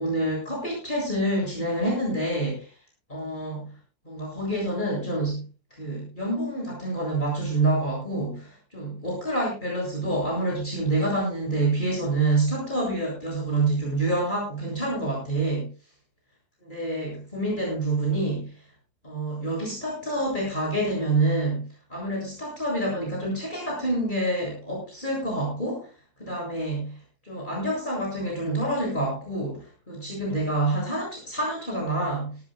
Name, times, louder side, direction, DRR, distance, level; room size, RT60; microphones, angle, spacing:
voice 1, 0.0-2.7 3.1-3.7 4.0-5.4 5.7-15.7 16.6-18.6 19.0-25.9 26.2-27.0 27.2-32.4, right 2 dB, 30° left, -3 dB, 7.8 m, -27 dB
21.0 x 15.0 x 2.3 m, 0.34 s
omnidirectional pair, 1.6 m